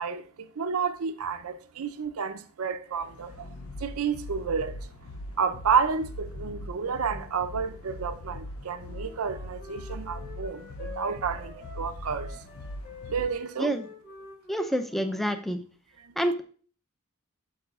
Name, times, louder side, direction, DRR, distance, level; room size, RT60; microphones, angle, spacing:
voice 1, 0.0-3.5 3.8-4.8 5.4-12.3 13.1-13.7 16.0-16.1, right 6 dB, 85° right, 0.6 m, -30 dB
sound 1, 3.0-13.3, left 1 dB, 75° left, 0.5 m, -41 dB
Wind instrument woodwind instrument, 8.8-15.4, left 4 dB, 45° left, 1.7 m, -48 dB
voice 2, 14.5-15.6 16.2-16.4, equal, ahead, 0.5 m, -27 dB
13.5 x 4.8 x 2.4 m
head